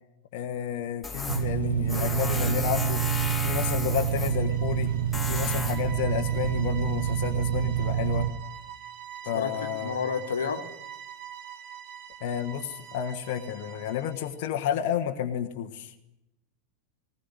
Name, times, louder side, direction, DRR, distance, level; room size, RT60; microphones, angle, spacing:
voice 1, 0.3-3.0 3.4-4.9 5.3-8.3 9.2-10.0 12.2-15.9, left 10 dB, 45° left, 4 dB, 1.5 m, -31 dB
Tools, 1.0-7.2, left 4 dB, 5° left, 3.3 m, -35 dB
sound 1, 1.3-8.3, right 10 dB, 65° right, 1.3 m, -27 dB
sound 2, 3.6-14.4, right 9 dB, 50° right, 2.9 m, -44 dB
voice 2, 9.3-10.6, left 6 dB, 70° left, 7 dB, 1.8 m, -30 dB
20.0 x 19.5 x 9.8 m, 0.89 s
figure-of-eight pair, 90°, 0 cm